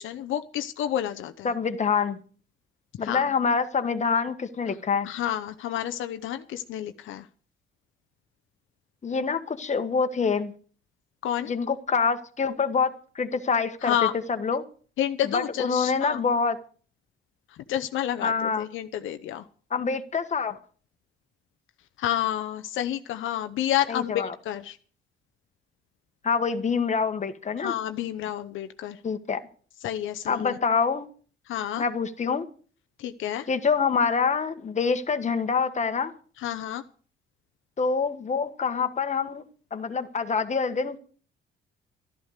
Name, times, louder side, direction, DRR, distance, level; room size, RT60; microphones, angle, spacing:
voice 1, 0.0-1.5 3.0-3.2 5.0-7.3 11.2-11.5 13.8-14.1 15.0-16.2 17.5-19.5 22.0-24.8 27.6-29.0 29.8-30.6 31.5-31.8 33.0-33.5 36.4-36.8, left 11 dB, 80° left, 9 dB, 0.8 m, -30 dB
voice 2, 1.4-2.2 3.0-5.1 9.0-10.5 11.5-13.9 14.3-14.6 15.3-16.6 18.2-18.6 19.7-20.6 23.9-24.3 26.2-27.7 29.0-29.4 30.3-31.1 31.8-32.4 33.5-36.1 37.8-39.4 39.7-41.0, left 5 dB, 35° left, 8 dB, 1.5 m, -26 dB
12.5 x 11.5 x 6.5 m, 0.43 s
cardioid pair, 90°, 20 cm